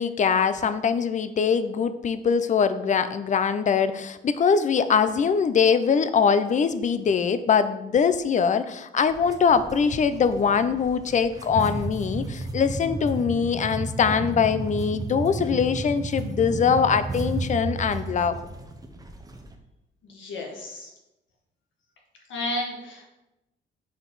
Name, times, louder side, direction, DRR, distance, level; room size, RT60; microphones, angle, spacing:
voice 1, 0.0-18.3, left 6 dB, 40° left, 12 dB, 0.5 m, -22 dB
sound 1, 9.1-19.5, right 2 dB, 20° right, 0.8 m, -33 dB
voice 2, 20.0-20.9 22.3-23.1, left 1 dB, 80° left, 0 dB, 1.7 m, -32 dB
5.7 x 4.6 x 4.0 m, 0.93 s
cardioid pair, 90°, 20 cm